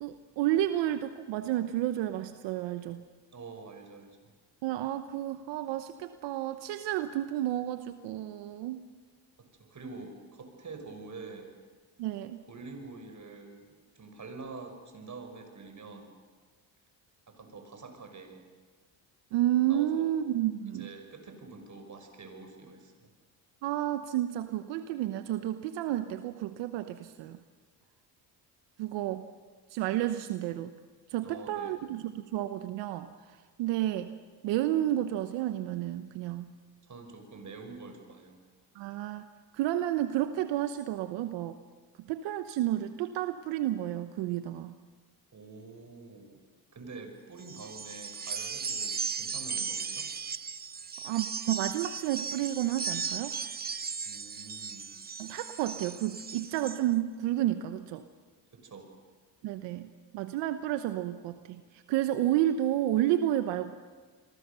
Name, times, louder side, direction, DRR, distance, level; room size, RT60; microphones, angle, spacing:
voice 1, 0.0-3.0 4.6-8.8 12.0-12.4 19.3-20.9 23.6-27.4 28.8-29.3 29.7-30.7 31.1-33.1 33.6-34.1 34.4-36.5 38.7-39.2 39.5-41.6 42.1-44.8 51.0-53.4 55.2-58.0 59.4-61.6 61.9-63.7, right 13 dB, 85° right, 10 dB, 1.0 m, -31 dB
voice 2, 3.3-4.3 9.4-11.6 12.5-16.2 17.3-18.4 19.7-20.1 20.7-22.9 31.2-31.8 36.8-38.4 45.3-46.4 46.7-50.1 53.7-55.0 58.5-58.9, right 4 dB, 40° right, 6 dB, 5.7 m, -46 dB
sound 1, 47.4-56.8, right 6 dB, 20° right, 0.7 m, -37 dB
28.5 x 22.5 x 6.8 m, 1.5 s
supercardioid pair, 70°, 43 cm